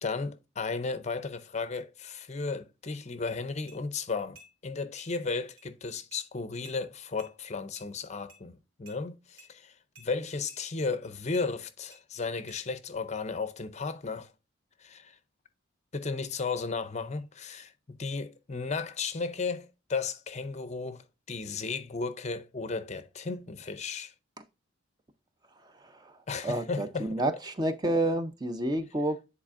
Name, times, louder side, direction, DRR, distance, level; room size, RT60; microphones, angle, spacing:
voice 1, 0.0-14.3 14.8-15.2 15.9-24.1 26.3-27.2, left 4 dB, 30° left, 0.5 m, -34 dB
sound 1, 3.7-3.8 4.4-4.5 5.0-5.1 5.6-5.7 6.1-6.2 6.6-6.8 7.2-7.3 7.8-7.9 8.3-8.4 8.9-9.0 9.4-9.5 10.0-10.1 10.5-10.6 11.3-11.5 11.9-12.0 12.5-12.6, right 1 dB, 80° right, 2.7 m, -54 dB
voice 2, 25.6-29.2, right 1 dB, 20° right, 0.5 m, -30 dB
10.0 x 4.1 x 2.5 m
head